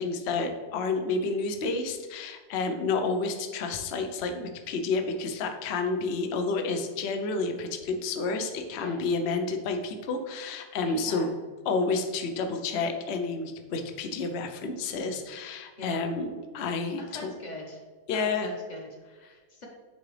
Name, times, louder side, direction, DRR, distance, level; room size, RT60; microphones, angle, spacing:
voice 1, 0.0-11.3 11.7-17.3 18.1-18.5, left 3 dB, 60° left, 5 dB, 0.7 m, -30 dB
voice 2, 10.8-11.3 15.8-16.0 17.0-17.8 18.1-19.7, left 1 dB, 30° left, -1 dB, 1.0 m, -42 dB
9.5 x 3.8 x 3.3 m, 1.4 s
omnidirectional pair, 1.9 m